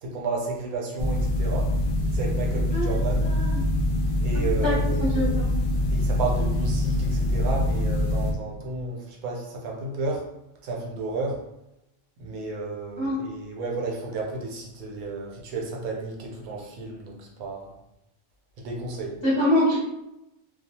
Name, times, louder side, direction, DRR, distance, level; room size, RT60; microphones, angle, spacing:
voice 1, 0.0-1.7 2.1-3.3 4.2-5.4 5.9-10.3 10.6-11.4 12.2-17.7 18.6-19.2, right 2 dB, 85° right, 0 dB, 1.1 m, -32 dB
sound 1, 1.0-8.3, left 1 dB, 80° left, 0.5 m, -24 dB
voice 2, 3.2-3.6 4.3-5.5 13.0-13.3 19.2-19.8, left 1 dB, 30° left, -8 dB, 0.5 m, -25 dB
2.3 x 2.3 x 2.7 m, 0.89 s
omnidirectional pair, 1.5 m